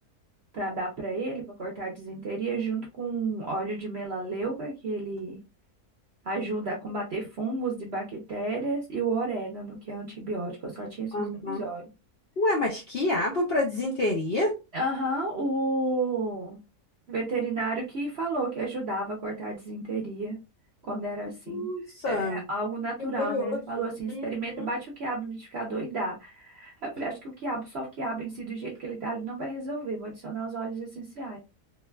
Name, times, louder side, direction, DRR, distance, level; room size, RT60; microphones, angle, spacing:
voice 1, 0.5-5.4 6.2-11.8 14.7-16.6 17.1-20.4 20.8-21.7 22.1-31.4, right 2 dB, 55° right, 0 dB, 0.8 m, -32 dB
voice 2, 11.1-11.6 12.4-14.5 21.5-22.4 23.2-23.6 24.1-24.7, left 2 dB, 60° left, -2 dB, 0.6 m, -28 dB
3.1 x 2.2 x 2.2 m, 0.27 s
omnidirectional pair, 1.7 m